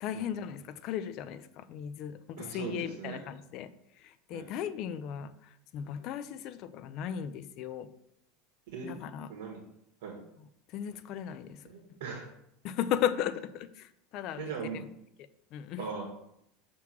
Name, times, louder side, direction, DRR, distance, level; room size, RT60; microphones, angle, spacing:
voice 1, 0.0-3.7 4.0-7.9 8.8-9.3 10.7-11.6 12.6-14.8 15.5-15.8, left 10 dB, 45° left, 12 dB, 0.4 m, -36 dB
voice 2, 2.4-3.3 4.3-4.4 8.7-9.0 9.3-9.6 10.0-10.2 11.6-12.3 14.4-14.8 15.8-16.0, right 5 dB, 75° right, -1 dB, 1.5 m, -39 dB
6.0 x 3.6 x 6.0 m, 0.78 s
supercardioid pair, 160°, 0 cm